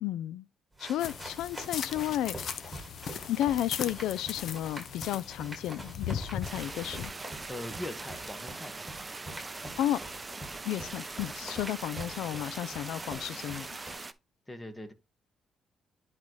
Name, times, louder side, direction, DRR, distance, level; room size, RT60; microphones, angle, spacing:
voice 1, 0.0-0.4 0.8-2.4 3.3-7.1 9.8-10.0 10.7-13.7, left 12 dB, 85° left, 0.3 m, -32 dB
sound 1, 0.7-13.9, right 1 dB, 5° right, 4.9 m, -46 dB
sound 2, 1.0-7.1, left 7 dB, 65° left, 0.8 m, -39 dB
sound 3, 6.4-14.1, right 3 dB, 25° right, 0.6 m, -42 dB
voice 2, 7.5-8.8 14.5-14.9, left 1 dB, 15° left, 1.5 m, -41 dB
10.5 x 4.0 x 3.1 m
cardioid pair, 90°, 0 cm